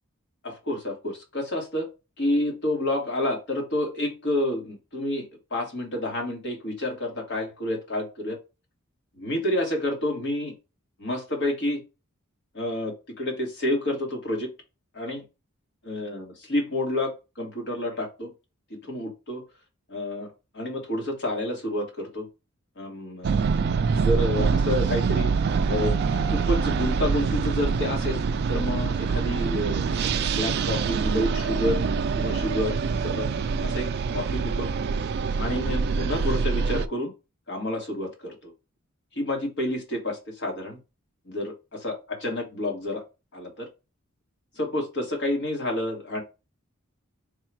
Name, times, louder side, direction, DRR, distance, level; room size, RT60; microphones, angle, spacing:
voice 1, 0.4-1.9 2.2-8.4 9.2-10.5 11.0-11.8 12.5-14.5 14.9-15.2 15.8-18.3 18.8-19.4 19.9-22.3 22.8-23.5 23.9-25.3 25.7-25.9 26.2-28.2 28.5-31.8 32.2-32.8 33.0-33.3 33.6-34.7 35.3-37.1 37.5-38.5 39.1-40.8 41.3-43.0 43.3-43.7 44.6-46.2, left 1 dB, 60° left, 1 dB, 1.4 m, -29 dB
sound 1, 23.2-36.9, right 5 dB, 50° right, 0.3 m, -25 dB
3.6 x 2.4 x 4.5 m, 0.28 s
head